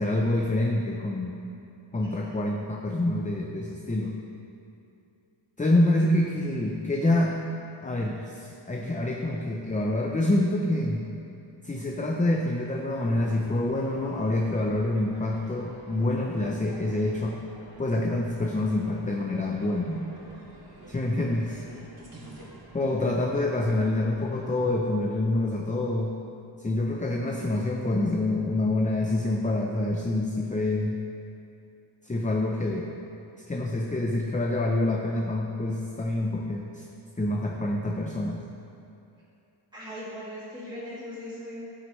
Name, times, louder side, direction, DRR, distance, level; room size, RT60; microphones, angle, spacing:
voice 1, 0.0-1.4 1.9-4.2 5.6-7.4 7.8-11.1 11.6-17.4 17.8-20.1 20.9-21.6 22.7-26.1 26.6-31.0 32.0-32.9 33.5-36.8 37.2-38.5, left 1 dB, 15° left, 1 dB, 0.5 m, -26 dB
voice 2, 2.0-2.4 21.4-21.9 39.7-41.7, left 1 dB, 10° right, -9 dB, 2.1 m, -40 dB
sound 1, 13.1-24.6, right 1 dB, 45° right, 2.4 m, -50 dB
14.5 x 7.6 x 3.1 m, 2.7 s
wide cardioid pair, 145°, 47 cm